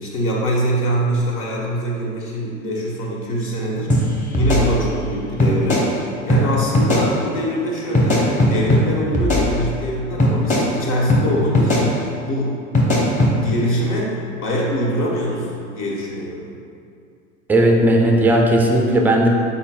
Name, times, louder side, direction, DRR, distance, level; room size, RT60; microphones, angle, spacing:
voice 1, 0.0-5.9 6.2-12.6 13.0-16.5, equal, 50° left, -4 dB, 1.3 m, -23 dB
sound 1, 3.9-4.0 4.3-5.1 5.4-5.8 6.3-6.4 6.7-7.0 7.9-8.8 9.1-9.9 10.2-10.6 11.1-11.2 11.5-11.8 12.7-13.3, left 1 dB, 20° left, 1.0 m, -17 dB
voice 2, 17.5-19.3, right 1 dB, 5° right, 1 dB, 0.3 m, -15 dB
5.5 x 4.1 x 2.3 m, 2.3 s
hypercardioid pair, 80°, 40 cm